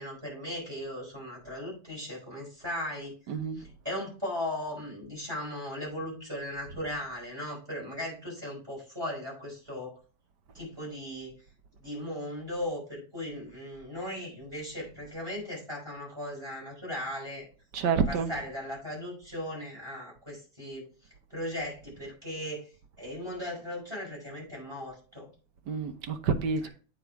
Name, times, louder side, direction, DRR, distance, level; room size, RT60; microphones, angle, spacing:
voice 1, 0.0-10.0 10.5-11.3 11.8-17.5 18.1-20.9 21.3-22.7 23.0-25.3, left 1 dB, 15° right, 4.9 m, -37 dB
voice 2, 3.3-3.6 17.7-18.3 25.7-26.7, right 5 dB, 90° right, 1.6 m, -28 dB
8.5 x 4.5 x 4.6 m
omnidirectional pair, 1.8 m